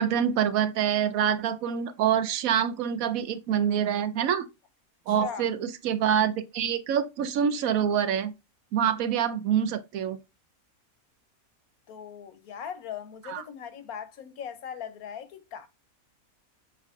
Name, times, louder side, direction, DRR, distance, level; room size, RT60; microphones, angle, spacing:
voice 1, 0.0-4.4 5.1-8.3 8.7-10.2 13.3-13.4, right 8 dB, 80° right, 1.0 m, -26 dB
voice 2, 5.1-5.5 11.9-15.7, left 8 dB, 85° left, 1.3 m, -39 dB
7.2 x 2.6 x 2.4 m
omnidirectional pair, 1.5 m